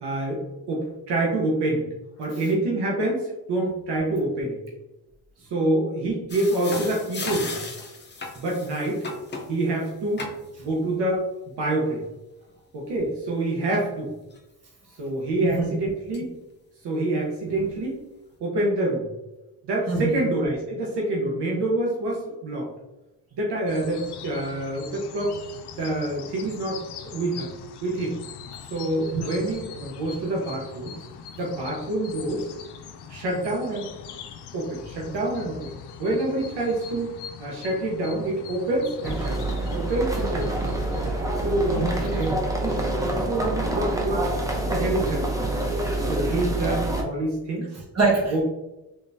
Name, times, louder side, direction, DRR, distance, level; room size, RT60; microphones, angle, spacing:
voice 1, 0.0-1.9 2.2-4.6 5.5-7.6 8.3-9.0 9.5-10.3 10.6-11.3 11.6-12.0 12.7-14.1 15.0-16.3 16.8-18.0 18.4-19.1 19.6-22.7 23.3-25.4 25.8-27.5 27.8-28.2 28.7-31.0 31.3-32.4 33.1-33.9 34.5-35.7 36.0-40.6 41.3-42.2 42.6-44.3 44.7-45.4 46.1-47.7 48.3-48.4, right 2 dB, 80° right, -2 dB, 1.0 m, -27 dB
sound 1, 6.3-9.5 10.2-10.6 14.4-14.5 15.2-15.3 16.1-16.2 17.5-17.7, left 3 dB, 25° left, 0.7 m, -35 dB
voice 2, 15.4-15.7 19.9-20.2 29.1-29.3 41.7-42.4 47.7-48.4, right 3 dB, 40° right, -3 dB, 1.5 m, -25 dB
sound 2, 23.7-42.4, left 7 dB, 75° left, 0.5 m, -42 dB
sound 3, 39.0-47.0, right 1 dB, 10° right, 0.7 m, -26 dB
3.7 x 3.4 x 2.7 m, 0.98 s
cardioid pair, 95°, 40 cm